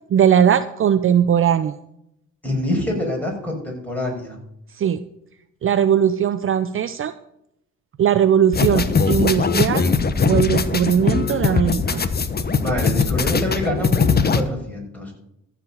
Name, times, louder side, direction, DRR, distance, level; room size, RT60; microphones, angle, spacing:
voice 1, 0.1-1.7 4.7-5.0 5.6-7.1 8.0-9.9 10.3-12.0, right 9 dB, 45° right, 12 dB, 0.6 m, -19 dB
voice 2, 2.4-4.4 12.6-15.1, left 1 dB, 5° left, -1 dB, 5.6 m, -26 dB
sound 1, 8.5-14.4, left 5 dB, 30° left, 1.0 m, -20 dB
14.0 x 5.0 x 8.5 m, 0.78 s
cardioid pair, 90°, 30 cm